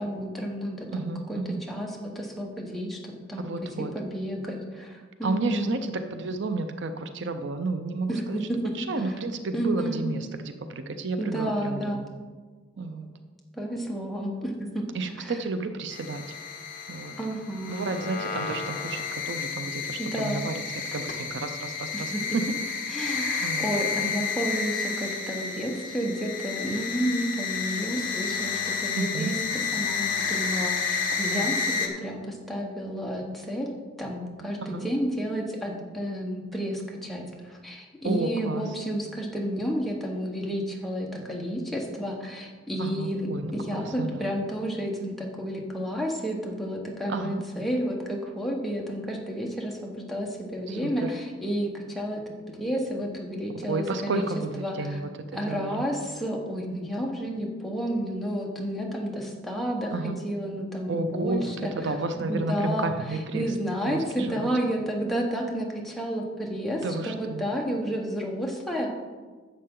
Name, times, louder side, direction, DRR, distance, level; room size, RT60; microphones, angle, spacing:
voice 1, 0.0-1.4 1.7-5.7 8.1-8.7 9.0-9.2 9.5-10.0 11.2-12.0 13.5-14.9 15.2-15.3 17.2-17.9 20.0-20.5 21.9-22.4 22.9-29.3 29.7-43.3 43.5-54.2 54.6-55.0 55.3-61.9 62.3-62.9 63.3-68.9, equal, ahead, -1 dB, 1.2 m, -31 dB
voice 2, 0.9-1.6 3.4-3.9 5.2-8.5 8.8-12.1 12.8-13.1 14.9-16.2 16.9-17.1 17.7-20.6 20.9-22.4 23.4-23.7 29.0-29.3 34.6-34.9 38.0-38.7 42.8-44.3 47.1-47.4 50.7-51.1 53.7-55.9 59.9-60.2 60.9-63.5 63.9-64.5 66.8-67.4, right 3 dB, 65° right, 8 dB, 0.6 m, -31 dB
sound 1, 15.9-31.9, left 5 dB, 45° left, 1.1 m, -31 dB
11.0 x 7.5 x 3.8 m, 1.4 s
head